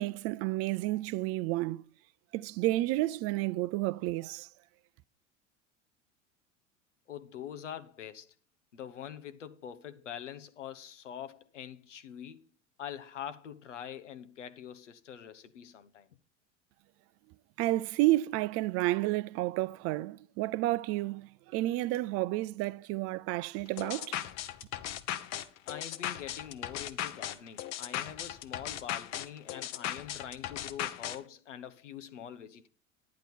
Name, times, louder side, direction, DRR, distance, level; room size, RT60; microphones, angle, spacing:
voice 1, 0.0-1.8 2.3-4.5 17.6-24.2, right 17 dB, 40° right, 0.5 m, -31 dB
voice 2, 7.1-8.3 8.7-12.4 12.8-16.1 25.6-32.7, left 9 dB, 75° left, 1.0 m, -44 dB
sound 1, 23.8-31.2, left 12 dB, 45° left, 1.0 m, -37 dB
10.5 x 10.5 x 4.3 m
figure-of-eight pair, 75°, 36 cm